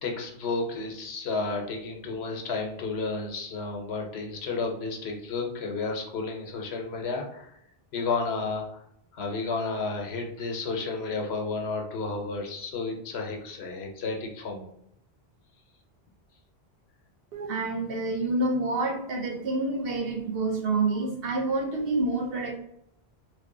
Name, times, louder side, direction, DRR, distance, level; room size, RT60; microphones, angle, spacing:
voice 1, 0.0-7.5 7.9-8.7 9.1-14.7, left 3 dB, 80° left, 2 dB, 1.0 m, -32 dB
voice 2, 17.3-22.6, right 2 dB, 70° right, 1 dB, 0.9 m, -28 dB
3.3 x 2.2 x 3.7 m, 0.75 s
omnidirectional pair, 1.1 m